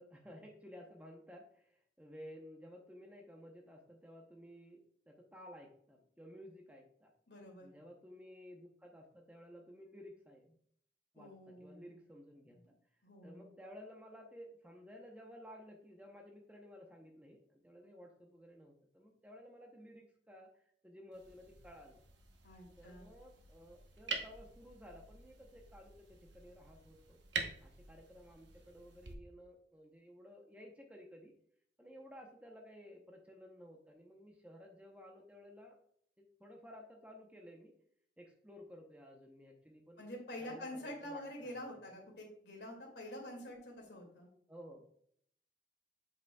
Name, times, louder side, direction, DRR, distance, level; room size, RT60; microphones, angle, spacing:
voice 1, 0.0-4.8 5.1-7.1 7.6-10.6 11.1-12.6 13.2-22.0 22.8-27.2 27.6-31.3 31.8-35.8 36.2-37.7 38.2-40.1 40.4-41.5 44.5-44.8, equal, 10° right, 1 dB, 0.8 m, -55 dB
voice 2, 7.3-7.7 11.2-11.9 12.5-12.7 13.0-13.5 22.4-23.1 40.0-44.3, left 1 dB, 70° left, 0 dB, 2.3 m, -47 dB
sound 1, 21.1-29.1, right 4 dB, 85° right, 1.0 m, -47 dB
7.9 x 5.9 x 2.3 m, 0.65 s
head